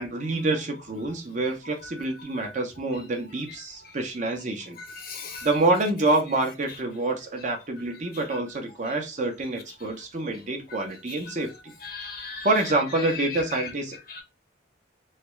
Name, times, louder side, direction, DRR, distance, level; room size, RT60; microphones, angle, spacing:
voice 1, 0.0-4.8 5.4-11.7 12.4-14.0, right 2 dB, 40° right, 0.7 m, -27 dB
voice 2, 4.8-5.5 8.3-8.4 11.3-11.4 11.8-12.5 13.1-13.7 14.1-14.2, left 5 dB, 50° left, 0.7 m, -37 dB
3.2 x 2.3 x 3.1 m
head